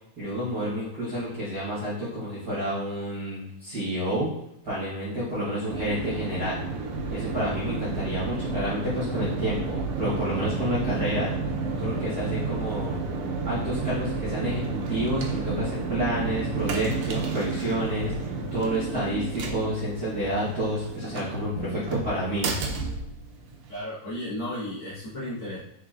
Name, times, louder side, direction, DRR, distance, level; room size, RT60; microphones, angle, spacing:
voice 1, 0.2-4.3 4.6-6.6 7.1-11.3 11.8-13.0 13.4-22.5, equal, 50° right, -9 dB, 1.2 m, -29 dB
sound 1, 5.7-23.8, right 4 dB, 80° right, 1.3 m, -31 dB
voice 2, 23.7-25.6, left 1 dB, 50° left, -10 dB, 1.7 m, -34 dB
4.9 x 3.8 x 2.4 m, 0.79 s
omnidirectional pair, 3.4 m